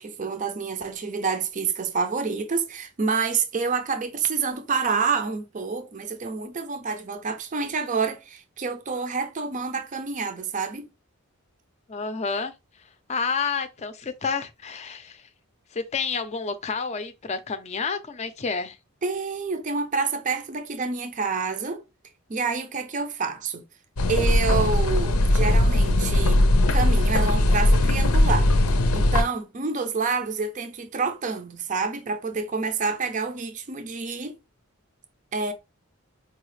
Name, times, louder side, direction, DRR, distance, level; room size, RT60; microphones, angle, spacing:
voice 1, 0.0-10.8 19.0-21.8 22.3-23.6 24.1-26.4 26.7-28.5 28.9-34.4 35.3-35.5, right 4 dB, 35° right, 0.5 m, -28 dB
voice 2, 11.9-12.5 13.1-15.3 15.7-18.8, left 5 dB, 30° left, 0.5 m, -29 dB
sound 1, 24.0-29.2, left 1 dB, 90° left, 0.6 m, -19 dB
4.6 x 2.4 x 3.2 m
head